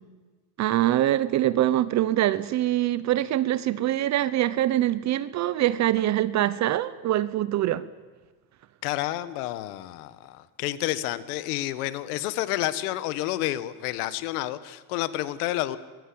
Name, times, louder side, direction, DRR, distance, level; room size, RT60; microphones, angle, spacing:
voice 1, 0.6-7.9, right 13 dB, 40° right, 16 dB, 0.8 m, -24 dB
voice 2, 8.8-15.8, left 15 dB, 85° left, 14 dB, 1.6 m, -30 dB
24.0 x 20.5 x 8.7 m, 1.3 s
cardioid pair, 145°, 44 cm